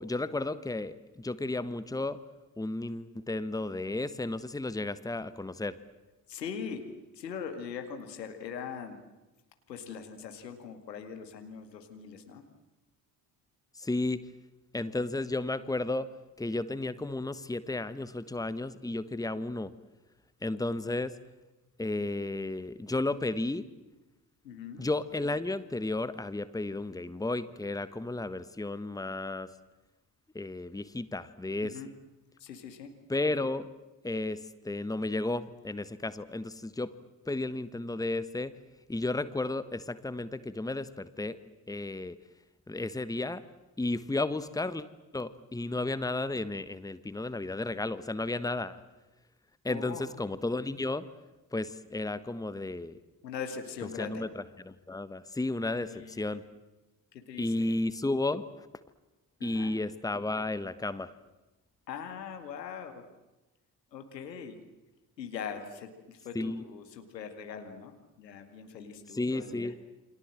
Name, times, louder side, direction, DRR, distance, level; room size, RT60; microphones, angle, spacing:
voice 1, 0.0-2.2 2.6-5.8 13.7-14.3 14.7-16.1 16.4-19.7 20.4-21.2 21.8-23.6 24.8-29.5 30.3-31.7 33.1-33.7 34.0-36.9 37.3-38.5 38.9-41.4 41.7-42.2 42.7-43.4 43.8-44.9 45.1-48.8 49.6-51.0 51.5-53.0 54.0-56.4 57.4-58.4 59.4-61.1 66.3-66.6 69.1-69.7, left 2 dB, 5° left, 14 dB, 1.3 m, -33 dB
voice 2, 6.3-6.8 7.1-9.0 9.7-12.4 24.4-24.9 31.6-31.9 32.4-32.9 49.7-50.1 53.2-54.3 55.7-56.3 57.1-57.7 59.4-59.7 61.9-63.0 63.9-64.6 65.2-69.7, left 7 dB, 80° left, 6 dB, 2.2 m, -41 dB
29.0 x 25.0 x 7.6 m, 1.1 s
figure-of-eight pair, 40°, 49 cm